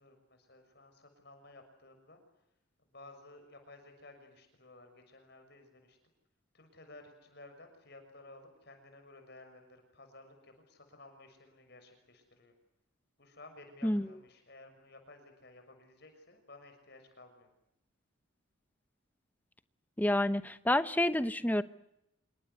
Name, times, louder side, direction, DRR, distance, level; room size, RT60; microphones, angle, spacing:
voice 1, 0.0-2.2 2.9-6.0 6.5-12.5 13.2-17.5, left 2 dB, 50° left, 6 dB, 6.5 m, -55 dB
voice 2, 20.0-21.6, left 1 dB, 10° left, 13 dB, 0.9 m, -29 dB
27.5 x 24.5 x 8.2 m, 0.84 s
head